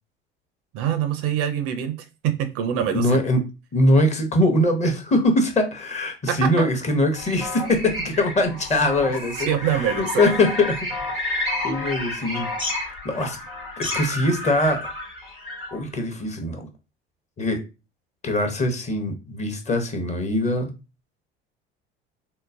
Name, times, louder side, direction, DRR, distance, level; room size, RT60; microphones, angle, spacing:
voice 1, 0.7-3.1 6.3-6.7 9.5-10.3, right 9 dB, 50° right, 10 dB, 0.5 m, -25 dB
voice 2, 2.9-3.4 3.7-10.8 11.1-13.4 13.8-14.9 15.7-16.7 17.4-17.6 18.2-20.7, left 1 dB, 25° left, 5 dB, 0.8 m, -22 dB
sound 1, 7.2-15.8, left 2 dB, 90° left, 1.4 m, -31 dB
3.8 x 2.0 x 2.5 m, 0.29 s
figure-of-eight pair, 65°, 30 cm